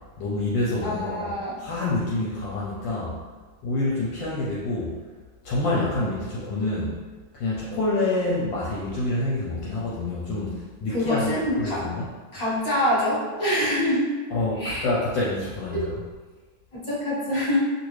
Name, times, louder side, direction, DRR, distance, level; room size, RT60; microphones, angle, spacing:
voice 1, 0.2-1.3 1.6-3.2 3.6-4.9 5.4-7.0 7.3-12.1 14.3-16.0, left 2 dB, 70° left, -7 dB, 1.2 m, -27 dB
voice 2, 0.8-1.6 10.9-11.8 12.3-14.1 14.6-14.8 15.7-15.9 16.7-17.7, left 1 dB, 25° left, -10 dB, 1.2 m, -25 dB
3.0 x 2.6 x 3.1 m, 1.4 s
omnidirectional pair, 2.3 m